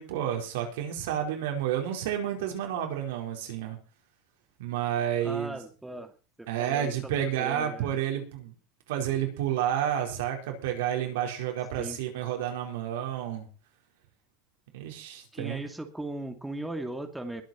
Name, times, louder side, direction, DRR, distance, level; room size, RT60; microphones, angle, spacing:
voice 1, 0.0-3.8 4.6-5.6 6.5-8.5 8.9-13.5 14.7-15.6, right 10 dB, 90° right, 2 dB, 4.9 m, -30 dB
voice 2, 5.2-6.1 6.4-8.0 11.8-12.0 15.3-17.4, right 1 dB, 5° right, 6 dB, 2.5 m, -38 dB
22.0 x 8.4 x 4.5 m, 0.34 s
supercardioid pair, 130°, 0 cm